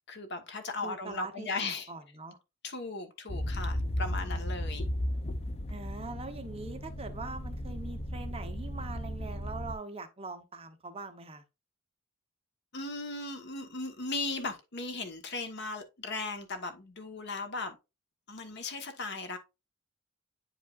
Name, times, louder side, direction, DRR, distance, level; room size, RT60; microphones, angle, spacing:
voice 1, 0.1-1.9 2.6-4.9 12.7-17.8 18.3-19.4, left 3 dB, 55° left, 1.3 m, -37 dB
voice 2, 0.8-2.4 5.7-11.4, right 3 dB, 30° right, 0.9 m, -42 dB
sound 1, 3.3-9.7, equal, 30° left, 0.5 m, -35 dB
9.3 x 5.1 x 2.5 m
head